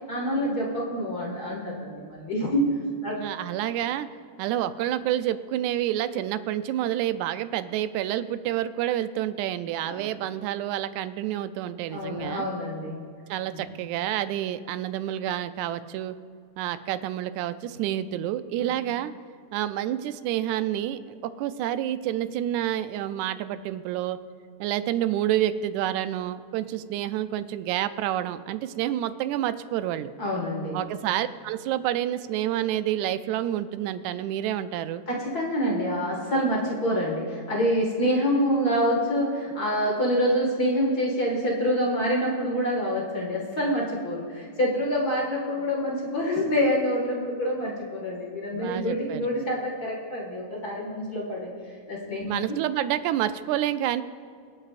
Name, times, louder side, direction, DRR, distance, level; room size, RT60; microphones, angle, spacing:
voice 1, 0.1-2.7 3.0-3.1 9.8-10.1 11.9-13.1 13.5-13.7 18.6-18.7 30.2-30.8 35.1-51.5 51.9-52.6, equal, 35° left, -3 dB, 2.0 m, -26 dB
voice 2, 3.2-4.1 4.4-12.5 13.3-16.2 16.6-19.1 19.5-24.2 24.6-30.1 30.7-35.0 48.5-49.3 52.2-54.0, right 12 dB, 90° right, 12 dB, 2.0 m, -28 dB
25.0 x 8.7 x 2.5 m, 2.2 s
omnidirectional pair, 3.3 m